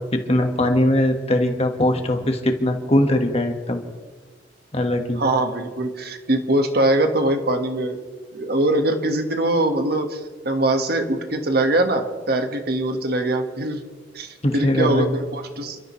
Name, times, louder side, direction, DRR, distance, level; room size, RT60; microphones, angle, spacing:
voice 1, 0.1-3.8 4.7-5.2 14.4-15.1, left 1 dB, 35° left, 4 dB, 1.6 m, -20 dB
voice 2, 5.2-8.0 8.3-13.8 14.1-15.8, right 1 dB, 60° right, 5 dB, 1.7 m, -22 dB
29.5 x 13.0 x 3.3 m, 1.4 s
head